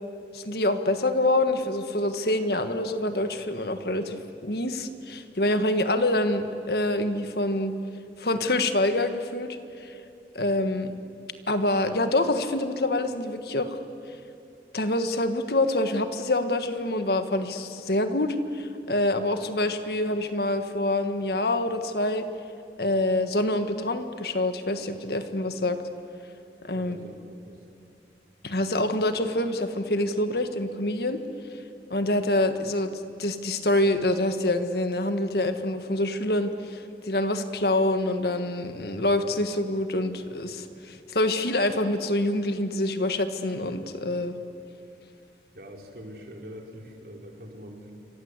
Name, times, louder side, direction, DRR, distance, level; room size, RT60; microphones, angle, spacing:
voice 1, 0.3-7.7 8.2-10.0 10.4-10.9 11.5-13.8 14.7-22.3 22.8-25.8 26.6-27.0 28.4-31.2 31.9-44.3, left 1 dB, 65° left, 8 dB, 1.7 m, -26 dB
voice 2, 26.7-27.6 45.5-47.9, equal, 55° right, 1 dB, 4.0 m, -44 dB
28.5 x 25.0 x 8.3 m, 2.6 s
head